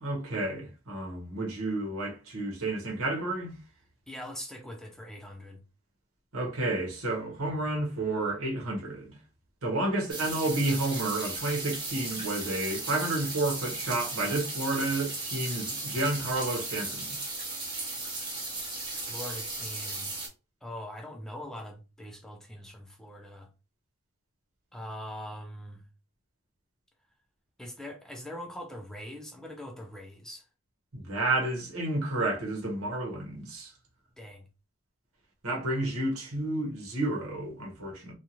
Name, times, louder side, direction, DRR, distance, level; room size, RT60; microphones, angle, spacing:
voice 1, 0.0-3.5 6.3-9.1 9.6-17.2 30.9-33.7 35.4-38.1, right 2 dB, 70° right, 1.1 m, -31 dB
voice 2, 4.1-5.6 18.9-20.2 20.6-23.5 24.7-25.8 27.6-30.4 34.2-34.5, left 1 dB, ahead, 0.5 m, -42 dB
sound 1, 10.1-20.3, right 2 dB, 20° right, 0.8 m, -36 dB
2.5 x 2.4 x 2.9 m
head